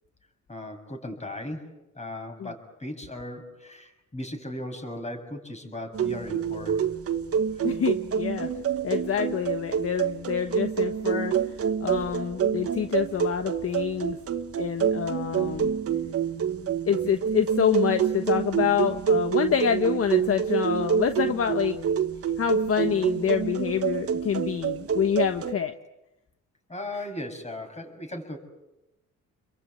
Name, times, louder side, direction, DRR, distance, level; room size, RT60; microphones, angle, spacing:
voice 1, 0.5-1.7 2.0-6.8 26.7-28.4, left 1 dB, 20° left, 4 dB, 7.0 m, -37 dB
sound 1, 5.9-25.5, right 7 dB, 50° right, 1.6 m, -27 dB
voice 2, 7.6-8.5 8.8-11.3 11.8-14.2 14.6-15.7 16.9-21.8 22.4-25.7 26.9-27.1, left 8 dB, 50° left, 8 dB, 1.3 m, -27 dB
29.0 x 22.5 x 8.6 m, 0.95 s
cardioid pair, 90°, 30 cm